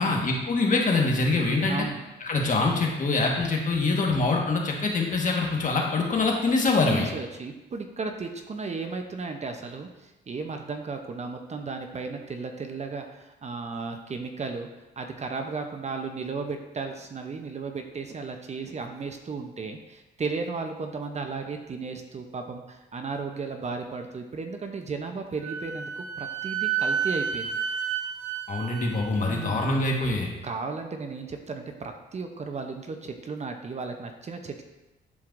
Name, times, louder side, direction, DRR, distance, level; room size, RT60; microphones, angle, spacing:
voice 1, 0.0-1.8 2.2-7.1 28.5-30.3, left 3 dB, 40° left, 0 dB, 1.4 m, -24 dB
voice 2, 1.7-2.0 6.8-14.7 15.0-27.5 29.3-29.7 30.4-34.6, right 4 dB, 35° right, 5 dB, 0.7 m, -35 dB
Wind instrument woodwind instrument, 25.4-29.9, right 7 dB, 90° right, 0.8 m, -31 dB
10.5 x 4.6 x 2.6 m, 1.0 s
cardioid pair, 90°, 20 cm